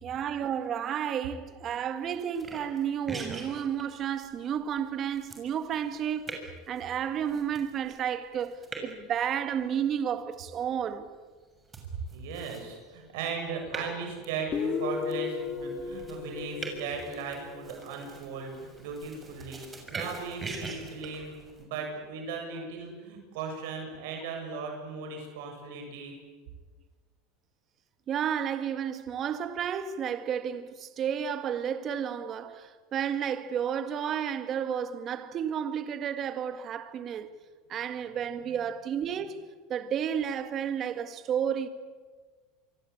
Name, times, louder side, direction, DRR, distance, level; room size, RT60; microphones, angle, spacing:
voice 1, 0.0-6.4 6.7-11.1 28.1-37.3 37.7-39.4 39.7-41.7, right 8 dB, 35° right, 2.0 m, -32 dB
sound 1, 2.3-21.6, right 3 dB, 20° right, 6.7 m, -44 dB
voice 2, 11.9-26.2, right 5 dB, 75° right, 7.6 m, -37 dB
Guitar, 14.5-18.0, left 6 dB, 30° left, 2.6 m, -35 dB
27.5 x 24.5 x 8.7 m
supercardioid pair, 130°, 0 cm